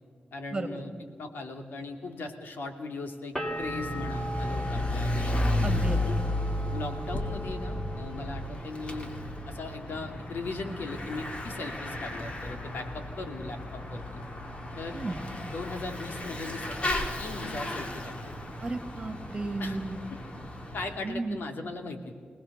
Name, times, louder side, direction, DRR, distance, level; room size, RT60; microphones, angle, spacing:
voice 1, 0.3-5.4 6.0-6.2 6.7-9.1 9.5-14.2 14.8-15.0 15.5-18.3 19.6-19.8 20.1-20.2 20.7-22.1, left 3 dB, 80° left, 5 dB, 2.7 m, -38 dB
sound 1, 3.4-9.0 9.3-10.0, right 1 dB, 15° left, 3.7 m, -39 dB
Bicycle / Mechanisms, 3.5-21.1, left 1 dB, 35° left, 2.7 m, -34 dB
voice 2, 5.6-6.0 14.9-15.2 18.6-20.0 21.0-21.4, right 2 dB, 25° right, 7 dB, 2.5 m, -33 dB
26.0 x 19.0 x 6.8 m, 2.1 s
wide cardioid pair, 110°, 3 cm